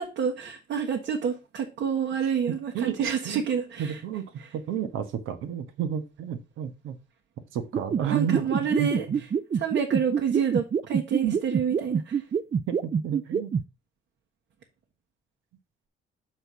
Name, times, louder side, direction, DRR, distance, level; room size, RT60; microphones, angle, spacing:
voice 1, 0.0-4.0 4.4-4.5 8.0-9.1 9.5-12.2, right 7 dB, 70° right, 1.5 m, -28 dB
voice 2, 2.7-3.4 3.8-4.2 4.5-7.0 7.5-9.2 11.2-11.3 12.7-13.5, right 8 dB, 90° right, 1.2 m, -31 dB
sound 1, 7.7-13.6, right 7 dB, 35° right, 0.5 m, -25 dB
6.5 x 4.5 x 5.5 m
cardioid pair, 90°, 20 cm